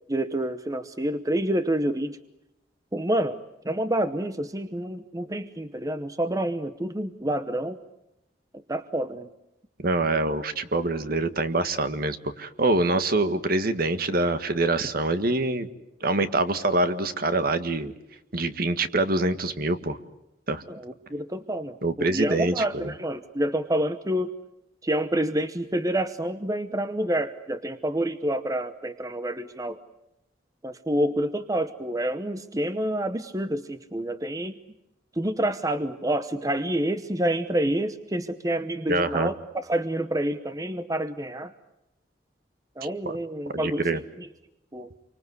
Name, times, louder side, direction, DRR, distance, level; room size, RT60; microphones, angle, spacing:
voice 1, 0.1-2.2 2.9-3.4 3.6-7.8 8.7-9.3 20.7-24.3 24.8-29.8 30.6-34.6 35.2-39.3 39.6-41.5 42.8-44.3 44.7-44.9, right 1 dB, 20° right, 11 dB, 0.9 m, -28 dB
voice 2, 9.8-15.7 16.0-17.9 18.3-20.0 20.5-20.6 21.8-22.9 38.9-39.3 43.1-43.2 43.5-44.0, right 2 dB, 55° right, 10 dB, 1.7 m, -25 dB
28.0 x 24.5 x 8.1 m, 0.88 s
head